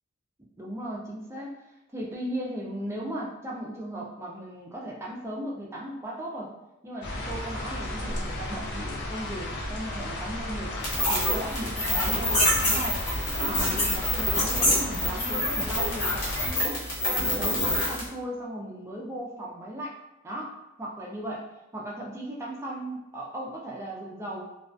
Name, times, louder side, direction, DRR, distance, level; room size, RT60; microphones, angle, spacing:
voice 1, 0.6-1.5 1.9-6.5 6.8-10.7 11.1-13.0 13.4-19.9 20.2-21.5 21.7-24.4, right 1 dB, 10° right, -3 dB, 0.4 m, -37 dB
sound 1, 7.0-16.5, left 1 dB, 55° left, 0.5 m, -34 dB
sound 2, 10.8-18.1, left 1 dB, 80° left, 1.0 m, -26 dB
2.3 x 2.2 x 2.4 m, 0.94 s
head